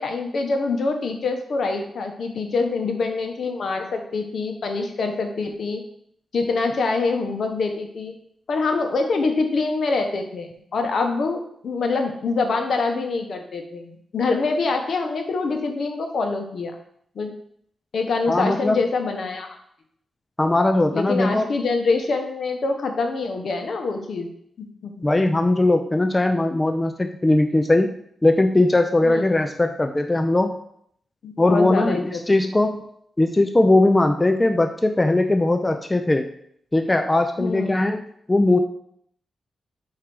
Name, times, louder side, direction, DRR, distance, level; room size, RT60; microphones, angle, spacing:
voice 1, 0.0-5.8 6.3-8.1 8.5-16.8 17.1-17.3 17.9-19.6 20.9-24.3 24.6-25.1 29.1-29.4 31.2-32.2 37.4-37.8, left 3 dB, 65° left, 4 dB, 1.1 m, -25 dB
voice 2, 18.3-18.8 20.4-21.5 25.0-27.9 28.2-30.6 31.4-32.9 33.2-36.3 36.7-38.0 38.3-38.6, left 2 dB, 20° left, 6 dB, 0.5 m, -19 dB
4.8 x 4.7 x 6.0 m, 0.68 s
cardioid pair, 80°, 0 cm